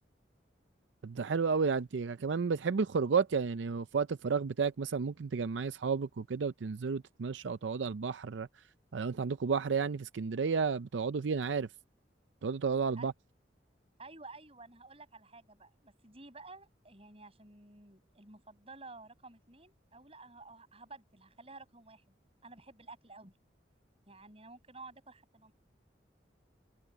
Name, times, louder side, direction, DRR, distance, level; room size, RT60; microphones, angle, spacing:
voice 1, 1.0-8.5 8.9-11.7 12.4-13.1, right 5 dB, 90° right, 0.5 m, -32 dB
voice 2, 14.0-22.0 22.4-23.3 24.1-25.5, right 3 dB, 35° right, 7.8 m, -52 dB
head